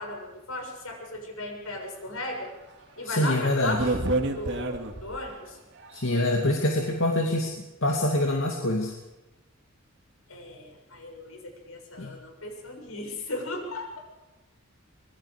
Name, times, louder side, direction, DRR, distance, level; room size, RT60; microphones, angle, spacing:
voice 1, 0.0-2.5 3.0-5.6 10.3-14.0, left 2 dB, 85° left, 2 dB, 6.9 m, -36 dB
sound 1, 2.5-2.6 3.1-3.2 3.6-5.3 5.8-6.3, right 2 dB, 60° right, 2.3 m, -29 dB
voice 2, 3.1-3.8 5.9-7.5 7.8-8.9 12.0-12.1, left 1 dB, 65° left, 1 dB, 2.5 m, -25 dB
25.5 x 21.5 x 5.1 m, 1.1 s
head